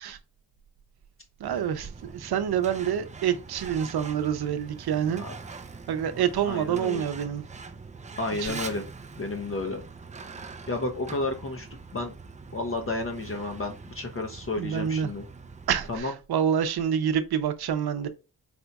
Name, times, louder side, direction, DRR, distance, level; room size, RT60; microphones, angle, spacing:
Truck, 1.4-16.0, right 4 dB, 20° right, 0.4 m, -43 dB
voice 1, 1.4-5.2 5.9-7.4 8.4-8.6 14.6-15.1 15.7-18.1, right 8 dB, 75° right, 0.7 m, -27 dB
voice 2, 6.5-7.0 8.2-8.9 9.2-9.8 10.7-11.7 11.9-12.1 12.5-15.3 15.9-16.1, left 2 dB, 35° left, 0.6 m, -31 dB
4.3 x 2.3 x 3.9 m
wide cardioid pair, 100°, 38 cm